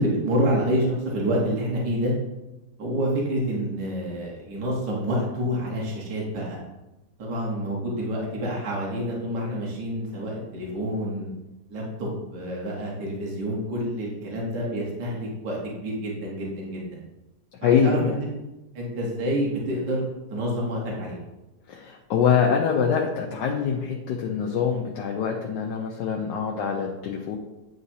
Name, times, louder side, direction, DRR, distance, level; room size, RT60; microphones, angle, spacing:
voice 1, 0.0-2.1 2.8-6.6 7.2-11.3 11.7-17.0 17.6-18.3 18.8-20.0 20.3-21.2, equal, 65° right, -3 dB, 1.9 m, -28 dB
voice 2, 17.6-18.1 21.7-27.4, left 7 dB, 75° left, 0 dB, 1.2 m, -24 dB
9.2 x 3.9 x 2.8 m, 1.0 s
omnidirectional pair, 2.0 m